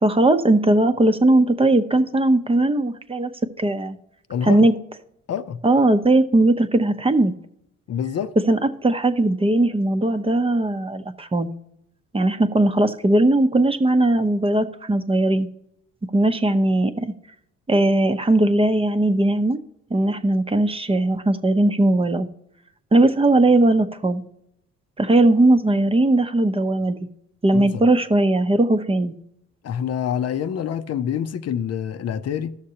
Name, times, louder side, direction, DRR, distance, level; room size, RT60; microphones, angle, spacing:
voice 1, 0.0-3.3 3.6-4.0 4.4-4.7 5.6-7.3 8.5-11.5 12.1-15.5 16.1-17.1 17.7-19.6 19.9-22.3 22.9-24.2 25.0-27.1 27.4-29.1, right 2 dB, 20° right, 0.7 m, -19 dB
voice 2, 4.3-4.7 5.3-5.6 7.9-8.3 27.5-27.9 29.6-32.6, left 8 dB, 55° left, 0.6 m, -26 dB
15.0 x 6.5 x 2.9 m
cardioid pair, 90°, 30 cm